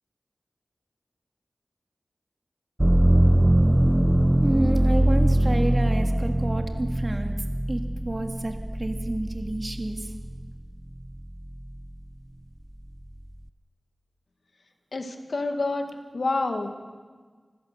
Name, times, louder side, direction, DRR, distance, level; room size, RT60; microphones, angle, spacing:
sound 1, 2.8-10.6 11.1-11.9, right 1 dB, 20° right, 0.6 m, -22 dB
voice 1, 4.4-7.4 7.7-10.1, right 1 dB, 35° right, 4 dB, 2.1 m, -29 dB
voice 2, 14.9-15.8 16.1-16.8, left 3 dB, 70° left, 5 dB, 2.1 m, -28 dB
25.5 x 15.5 x 6.9 m, 1.5 s
wide cardioid pair, 55°, 0 cm